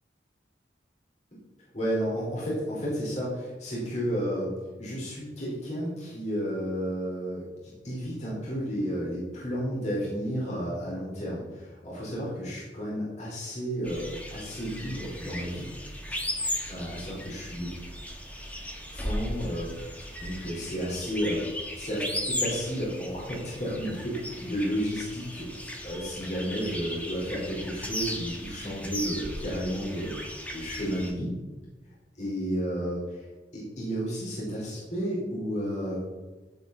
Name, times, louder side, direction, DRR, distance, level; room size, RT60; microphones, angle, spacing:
voice 1, 1.7-4.5 4.8-15.7 16.7-17.7 18.9-21.5 21.7-25.5 25.8-30.2 30.5-31.3 32.2-33.2 33.5-36.0, equal, 40° left, -6 dB, 4.4 m, -32 dB
sound 1, 13.8-31.1, left 1 dB, 10° left, 1.9 m, -37 dB
15.5 x 7.8 x 4.1 m, 1.2 s
head